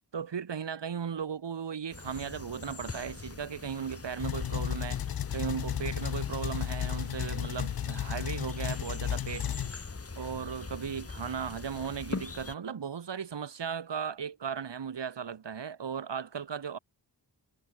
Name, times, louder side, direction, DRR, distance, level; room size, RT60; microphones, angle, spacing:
voice 1, 0.1-5.0 5.3-9.5 10.1-16.8, right 7 dB, 80° right, 3.3 m, -36 dB
sound 1, 1.9-12.6, left 4 dB, 35° left, 3.1 m, -43 dB
sound 2, 4.2-9.7, left 10 dB, 55° left, 0.6 m, -33 dB
wide cardioid pair, 155°, 42 cm